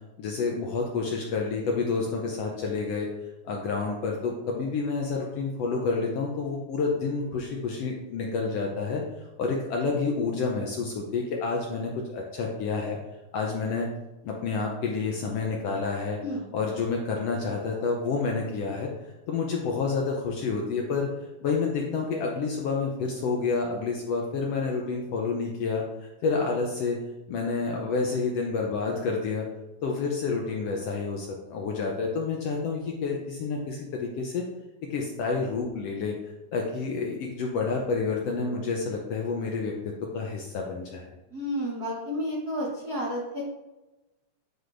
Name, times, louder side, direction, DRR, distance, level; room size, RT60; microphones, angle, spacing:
voice 1, 0.2-3.1 3.4-9.0 9.4-13.0 13.3-13.9 14.2-16.2 16.5-18.9 19.3-21.1 21.4-27.0 27.3-29.4 29.8-34.4 34.9-41.1, left 4 dB, 75° left, 0 dB, 1.5 m, -29 dB
voice 2, 41.3-43.4, equal, 60° right, -6 dB, 0.9 m, -31 dB
9.4 x 4.8 x 2.6 m, 1.0 s
omnidirectional pair, 3.5 m